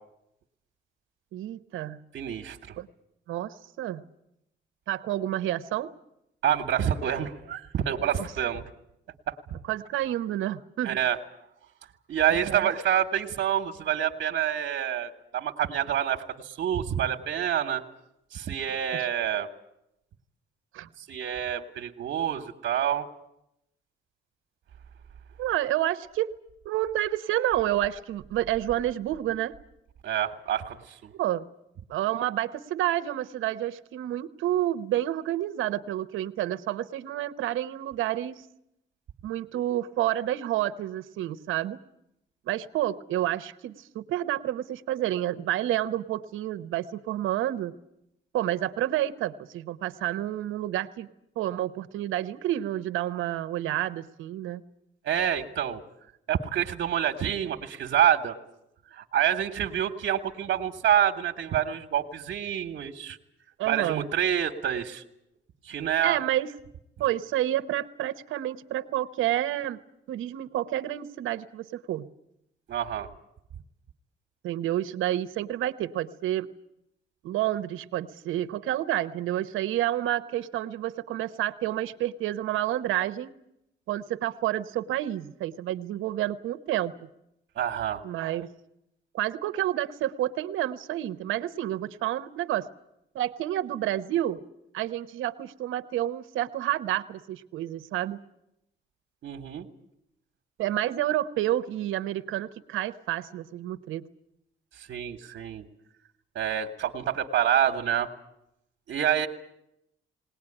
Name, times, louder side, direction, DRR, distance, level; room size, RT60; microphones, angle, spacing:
voice 1, 1.3-2.0 2.8-2.9 3.3-4.0 4.9-5.9 8.2-8.3 9.7-11.0 12.3-12.7 18.9-19.0 20.7-20.9 25.4-26.3 26.6-29.5 31.2-31.5 31.9-38.4 39.2-41.8 42.5-47.7 48.3-51.1 51.4-54.6 63.6-64.1 66.0-66.5 67.0-69.8 70.1-72.1 74.4-76.5 77.2-83.3 83.9-86.9 88.0-88.5 89.1-92.7 93.1-94.4 94.7-98.2 100.6-104.0, right 13 dB, 85° right, 12 dB, 1.0 m, -29 dB
voice 2, 2.1-2.8 6.4-8.6 9.3-9.6 10.8-11.2 12.1-17.8 18.3-19.5 21.0-23.1 30.0-31.1 55.0-55.8 56.3-58.4 58.9-63.2 63.7-65.0 65.6-66.2 72.7-73.1 87.5-88.0 99.2-99.7 104.8-105.6 106.3-108.1 108.9-109.3, right 10 dB, 65° right, 3 dB, 1.5 m, -27 dB
20.0 x 19.0 x 10.0 m, 0.81 s
cardioid pair, 90°, 20 cm